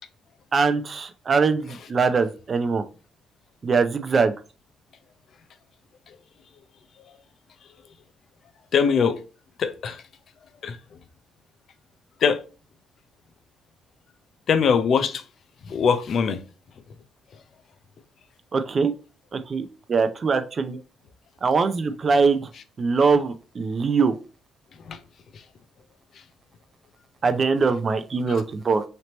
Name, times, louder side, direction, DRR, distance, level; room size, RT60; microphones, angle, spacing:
voice 1, 0.5-2.8 3.6-4.3 18.5-18.9 19.3-20.8 21.4-22.5 22.8-24.2 27.2-28.8, right 4 dB, 40° right, 0.5 m, -22 dB
voice 2, 8.7-9.2 9.6-10.0 10.6-10.8 12.2-12.4 14.5-15.2 15.7-16.4 24.9-25.0 28.3-28.4, left 6 dB, 60° left, 0.5 m, -22 dB
3.2 x 2.9 x 4.0 m
cardioid pair, 90°, 0 cm